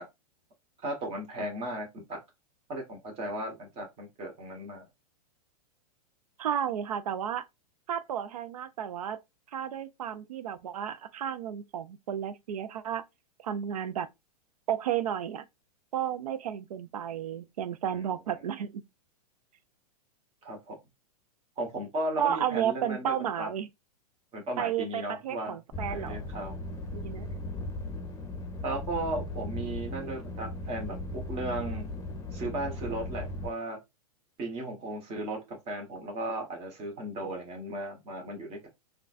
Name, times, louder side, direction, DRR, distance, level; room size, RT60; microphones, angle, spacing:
voice 1, 0.8-2.2 2.7-4.9 17.9-18.0 20.4-20.7 21.6-23.5 24.3-25.6 25.9-26.5 28.6-31.9 32.3-33.8 34.4-38.7, right 1 dB, 30° right, 1.4 m, -36 dB
voice 2, 6.4-7.4 7.9-9.2 9.5-13.0 13.4-14.1 14.7-15.4 15.9-18.8 22.2-23.7 24.6-26.3 26.9-27.3, right 9 dB, 70° right, 0.5 m, -32 dB
sound 1, 25.7-33.5, left 1 dB, 15° left, 0.8 m, -37 dB
3.7 x 2.3 x 2.5 m
hypercardioid pair, 105°, 20 cm